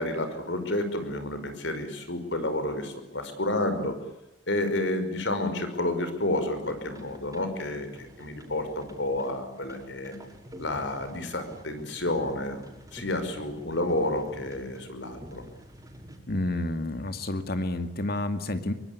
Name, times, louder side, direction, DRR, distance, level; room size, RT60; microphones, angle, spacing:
voice 1, 0.0-4.0 4.5-10.1 10.6-12.6 12.9-15.4, left 1 dB, 80° left, 9 dB, 5.5 m, -30 dB
sound 1, 6.5-16.2, equal, 20° right, 5.5 m, -49 dB
voice 2, 16.3-18.7, left 1 dB, 55° left, 8 dB, 2.2 m, -29 dB
23.5 x 23.0 x 8.5 m, 0.95 s
head